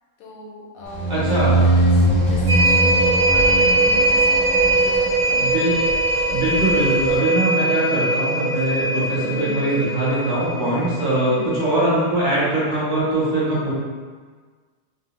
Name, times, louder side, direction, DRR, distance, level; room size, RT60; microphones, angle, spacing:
voice 1, 0.2-1.1 1.4-5.4 9.2-9.6 11.2-11.5, left 1 dB, 70° left, -3 dB, 0.9 m, -37 dB
sound 1, 0.8-7.2, right 1 dB, ahead, 0.4 m, -34 dB
sound 2, 0.9-5.5, right 1 dB, 50° left, 0.6 m, -21 dB
voice 2, 1.1-1.6 5.4-5.7 6.3-13.7, right 1 dB, 35° right, -9 dB, 0.9 m, -22 dB
sound 3, 2.5-12.2 12.6-12.7, right 2 dB, 60° right, 0.5 m, -21 dB
2.5 x 2.0 x 3.1 m, 1.5 s
omnidirectional pair, 1.6 m